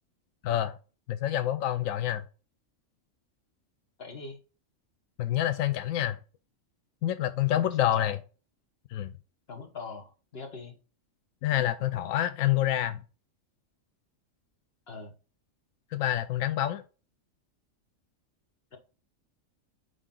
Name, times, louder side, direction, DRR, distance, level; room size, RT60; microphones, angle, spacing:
voice 1, 0.4-0.8 1.1-2.3 5.2-6.2 7.0-8.2 8.9-9.1 11.4-13.0 15.9-16.8, left 12 dB, 90° left, 1.0 m, -27 dB
voice 2, 4.0-4.4 7.5-8.1 9.5-10.7 14.9-15.1, left 4 dB, 50° left, 1.7 m, -42 dB
9.9 x 3.7 x 3.8 m
omnidirectional pair, 1.3 m